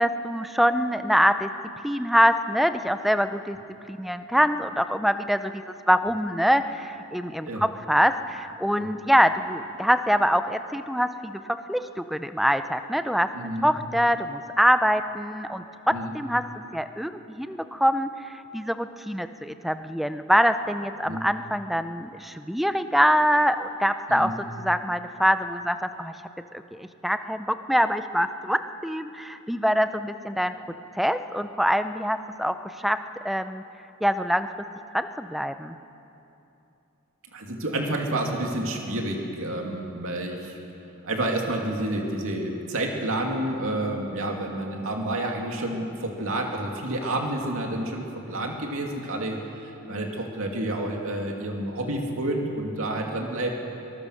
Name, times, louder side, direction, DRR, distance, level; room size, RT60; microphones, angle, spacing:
voice 1, 0.0-1.5 1.8-3.6 3.9-13.3 13.6-16.5 16.7-26.1 26.5-30.5 30.9-33.6 34.0-34.5 34.9-35.7, equal, ahead, 10 dB, 0.6 m, -24 dB
voice 2, 13.3-13.7 15.9-16.1 21.0-21.2 24.1-24.3 37.3-40.6 41.0-53.6, right 1 dB, 65° right, 1 dB, 2.6 m, -29 dB
23.5 x 20.0 x 6.5 m, 2.8 s
head